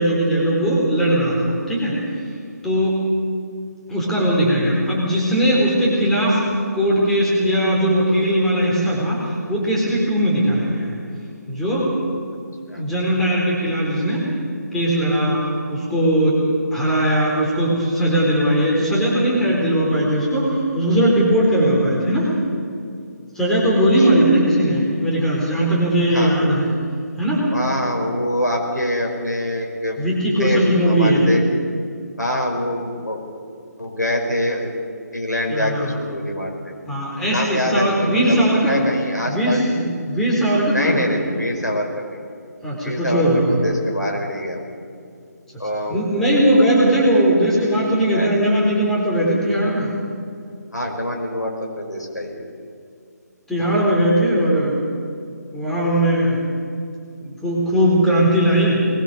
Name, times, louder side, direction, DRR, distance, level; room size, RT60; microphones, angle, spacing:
voice 1, 0.0-2.0 2.6-3.0 3.9-6.4 6.7-10.9 11.5-11.9 12.8-14.2 14.7-22.3 23.3-26.7 27.2-27.4 30.0-31.3 35.5-35.9 36.9-38.9 39.2-41.2 42.6-43.6 45.9-49.9 53.5-54.8 55.5-56.4 57.2-58.8, right 1 dB, 5° left, -5 dB, 4.0 m, -19 dB
voice 2, 26.0-26.4 27.5-30.0 30.4-31.6 32.2-33.2 33.8-34.8 35.1-36.5 37.2-38.4 38.7-39.6 40.7-42.2 42.8-44.6 45.6-46.0 48.1-48.3 50.7-52.4, left 1 dB, 85° left, 1 dB, 5.4 m, -25 dB
21.0 x 20.5 x 6.9 m, 2.4 s
figure-of-eight pair, 150°, 9 cm